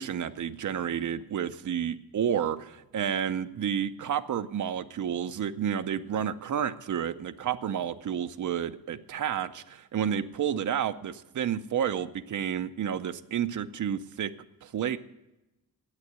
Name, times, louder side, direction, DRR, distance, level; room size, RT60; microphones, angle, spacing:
voice 1, 0.0-14.3 14.6-15.0, right 9 dB, 55° right, 10 dB, 0.6 m, -30 dB
9.7 x 8.3 x 9.2 m, 0.96 s
wide cardioid pair, 170°, 36 cm